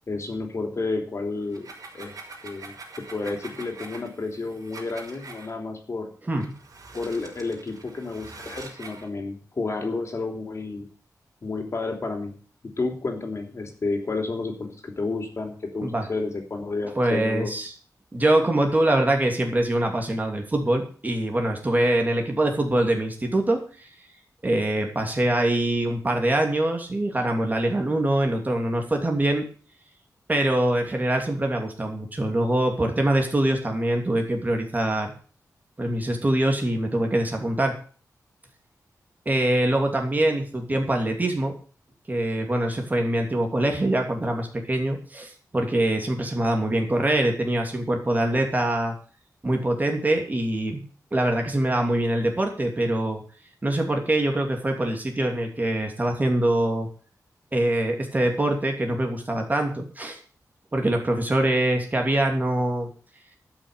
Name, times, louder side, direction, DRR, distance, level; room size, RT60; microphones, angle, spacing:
voice 1, 0.1-1.7 1.9-2.1 2.4-2.7 3.1-6.1 6.9-10.9 11.4-12.3 12.6-17.5, left 3 dB, 45° left, 4 dB, 3.2 m, -31 dB
sound 1, 1.4-5.5 6.3-9.1, right 3 dB, 60° right, 4.9 m, -44 dB
voice 2, 16.9-17.7 18.1-23.9 24.4-29.4 30.3-35.1 35.8-37.8 39.2-41.5 42.1-48.9 49.4-50.8 51.1-53.2 53.6-56.9 57.5-60.2 60.7-62.9, right 1 dB, 25° right, 3 dB, 2.9 m, -24 dB
12.0 x 6.3 x 9.1 m, 0.42 s
wide cardioid pair, 105°, 7 cm